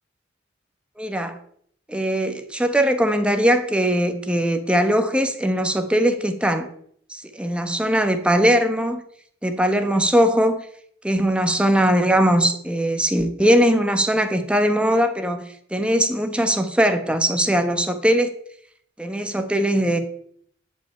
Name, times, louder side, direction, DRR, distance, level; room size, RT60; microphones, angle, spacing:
voice 1, 1.0-1.3 1.9-6.7 7.1-9.0 9.4-10.7 11.0-15.4 15.7-18.3 19.0-20.0, equal, 5° right, 7 dB, 1.3 m, -20 dB
11.0 x 5.7 x 8.7 m, 0.64 s
head